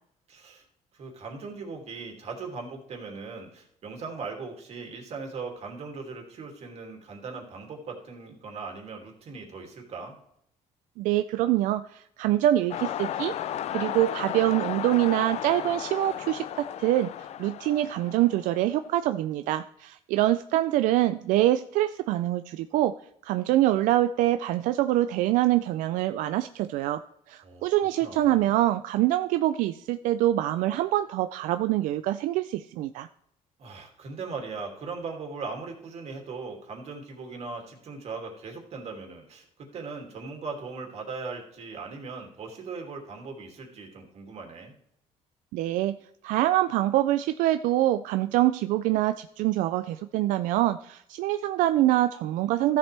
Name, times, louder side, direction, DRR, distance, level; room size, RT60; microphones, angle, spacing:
voice 1, 0.3-0.6 0.9-10.2 27.4-28.5 33.6-44.7, right 4 dB, 55° right, 2 dB, 2.6 m, -39 dB
voice 2, 11.0-13.4 13.7-22.9 23.2-27.0 27.3-33.1 45.5-46.0 46.2-52.8, right 14 dB, 85° right, 10 dB, 0.4 m, -25 dB
sound 1, 12.7-18.9, left 10 dB, 55° left, 0.5 m, -34 dB
14.0 x 7.3 x 3.4 m, 0.72 s
cardioid pair, 115°, 13 cm